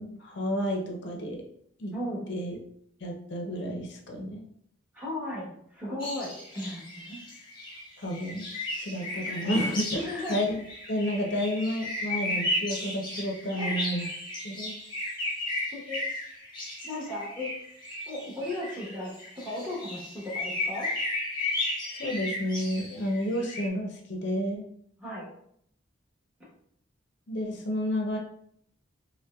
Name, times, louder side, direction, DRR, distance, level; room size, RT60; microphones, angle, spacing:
voice 1, 0.0-1.4 1.8-1.9 2.3-2.6 3.0-4.4 8.0-8.5 8.8-10.6 10.9-14.1 14.4-14.8 22.0-24.7 27.3-28.2, equal, 60° left, 1 dB, 0.6 m, -31 dB
voice 2, 1.9-2.2 4.9-7.2 10.0-10.4 13.6-13.7 15.7-16.1 16.8-17.5 18.1-20.9 25.0-25.3, left 1 dB, 5° right, -6 dB, 1.1 m, -36 dB
sound 1, 6.0-23.7, left 1 dB, 25° left, 0.9 m, -34 dB
5.3 x 2.1 x 2.3 m, 0.68 s
head